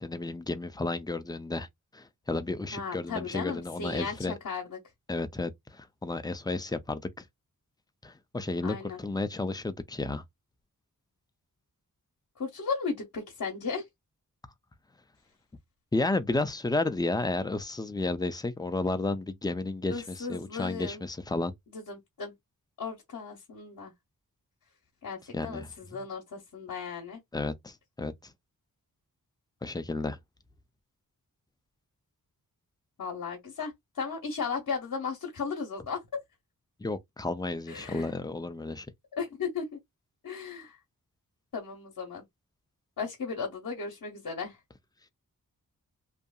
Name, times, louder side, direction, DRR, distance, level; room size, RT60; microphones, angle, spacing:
voice 1, 0.0-1.7 1.9-4.3 5.1-7.2 8.0-10.2 15.9-21.5 25.3-25.7 27.3-28.3 29.6-30.2 36.8-38.9, left 2 dB, 10° left, 0.3 m, -32 dB
voice 2, 2.7-4.8 8.6-9.0 12.4-13.8 19.9-21.0 21.7-22.3 22.8-23.9 25.0-27.2 33.0-36.0 37.7-38.1 39.1-39.8 40.2-40.8 41.5-42.2 43.0-44.6, left 5 dB, 60° left, 0.9 m, -36 dB
2.7 x 2.5 x 2.3 m
wide cardioid pair, 105°, 35 cm